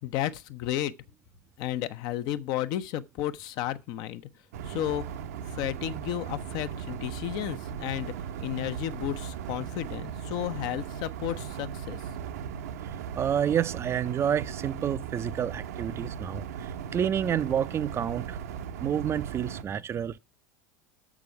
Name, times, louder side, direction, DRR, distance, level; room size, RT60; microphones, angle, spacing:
voice 1, 0.0-0.9 1.6-4.2 4.6-5.1 5.4-8.1 8.4-12.0, left 12 dB, 50° left, 0.8 m, -32 dB
sound 1, 4.5-19.6, right 8 dB, 65° right, 0.8 m, -37 dB
voice 2, 13.2-18.4 18.8-20.2, right 9 dB, 30° right, 0.5 m, -29 dB
6.9 x 6.1 x 5.8 m
figure-of-eight pair, 80°, 9 cm